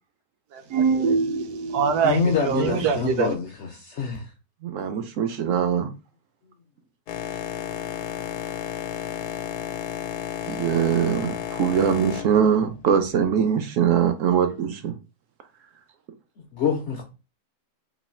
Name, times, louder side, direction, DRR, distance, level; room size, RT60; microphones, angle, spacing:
voice 1, 0.5-3.3, right 5 dB, 85° right, 1.2 m, -23 dB
voice 2, 2.0-4.3 16.4-17.0, left 6 dB, 60° left, 0.7 m, -26 dB
voice 3, 4.6-5.9 10.5-14.9, right 8 dB, 70° right, 0.8 m, -22 dB
Boat Water vehicle, 7.1-13.4, left 10 dB, 80° left, 1.1 m, -33 dB
3.1 x 2.6 x 4.2 m
omnidirectional pair, 1.6 m